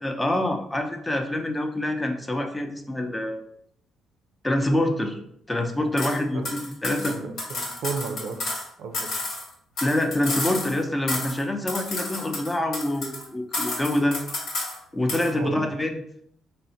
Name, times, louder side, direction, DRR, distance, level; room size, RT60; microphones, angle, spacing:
voice 1, 0.0-3.4 4.4-5.2 5.5-7.2 9.8-14.2 14.9-16.0, left 1 dB, 15° left, 4 dB, 0.5 m, -26 dB
sound 1, 6.0-6.2 6.4-8.7 8.9-10.8 11.1-11.4 11.7-13.2 13.5-14.8 15.1-15.3, left 2 dB, 75° left, 1.1 m, -31 dB
voice 2, 7.1-8.4 8.8-9.1 15.4-15.8, right 4 dB, 80° right, 4 dB, 0.5 m, -33 dB
3.7 x 2.1 x 2.7 m, 0.70 s
cardioid pair, 90°, 0 cm